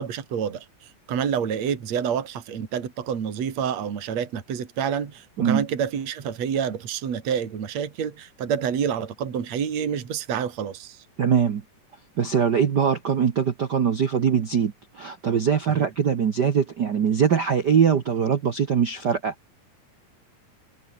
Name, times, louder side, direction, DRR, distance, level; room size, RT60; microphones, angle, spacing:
voice 1, 0.0-11.0, right 7 dB, 50° right, 3.7 m, -28 dB
voice 2, 11.2-11.6 12.2-19.3, right 7 dB, 85° right, 0.9 m, -22 dB
omnidirectional pair, 3.9 m